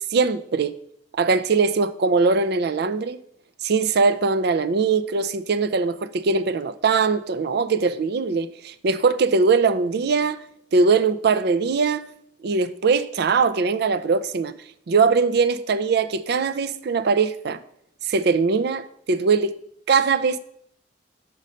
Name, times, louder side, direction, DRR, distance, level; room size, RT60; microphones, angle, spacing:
voice 1, 0.1-0.7 1.1-3.2 3.6-10.4 10.7-12.0 12.4-14.5 14.9-17.6 18.1-19.6 19.9-20.4, right 4 dB, 60° right, 0.4 m, -21 dB
5.5 x 5.2 x 6.3 m
head